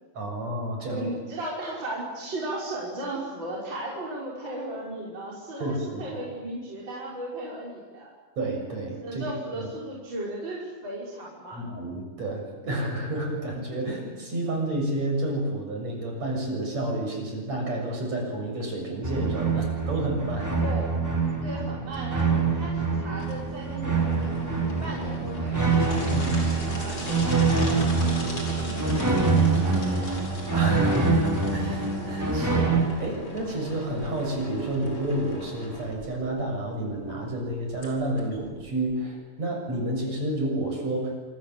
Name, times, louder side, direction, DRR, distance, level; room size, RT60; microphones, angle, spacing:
voice 1, 0.1-1.1 5.6-6.0 8.4-9.3 9.6-9.7 11.5-20.6 21.3-21.4 26.1-26.2 30.5-41.3, right 1 dB, 45° right, 1 dB, 8.1 m, -30 dB
voice 2, 0.9-8.1 9.0-11.6 20.6-20.9 21.4-30.2, right 1 dB, 30° right, -4 dB, 6.1 m, -36 dB
sound 1, 19.0-32.8, right 4 dB, 5° right, 3.7 m, -25 dB
sound 2, 21.9-39.0, left 1 dB, 30° left, 6.0 m, -38 dB
27.5 x 27.0 x 7.9 m, 1.3 s
omnidirectional pair, 4.2 m